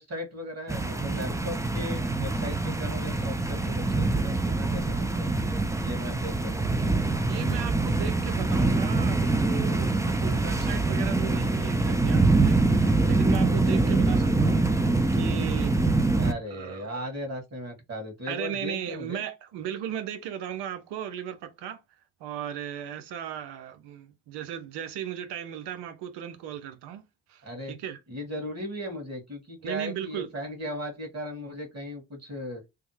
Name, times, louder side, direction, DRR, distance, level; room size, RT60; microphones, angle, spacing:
voice 1, 0.0-5.3 5.8-7.0 16.2-19.2 27.4-27.7 28.1-32.6, equal, 40° right, 2.0 m, -37 dB
sound 1, 0.7-16.3, right 3 dB, 10° right, 0.6 m, -24 dB
voice 2, 7.2-14.7 15.1-15.8 16.5-17.0 18.3-21.8 22.2-27.0 27.3-28.0 29.6-30.3, right 9 dB, 80° right, 0.8 m, -36 dB
3.4 x 2.1 x 3.2 m
hypercardioid pair, 50°, 41 cm